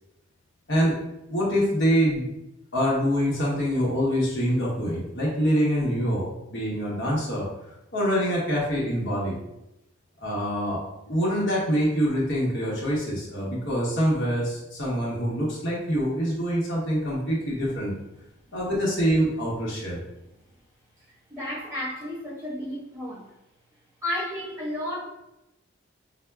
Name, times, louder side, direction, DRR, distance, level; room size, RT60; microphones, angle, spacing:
voice 1, 1.3-2.3 2.7-7.5 7.9-9.4 10.2-18.0 18.5-20.0, equal, 70° left, -6 dB, 1.0 m, -25 dB
voice 2, 21.3-23.3 24.0-25.0, left 1 dB, 15° right, -9 dB, 1.2 m, -32 dB
5.6 x 2.1 x 2.3 m, 0.91 s
head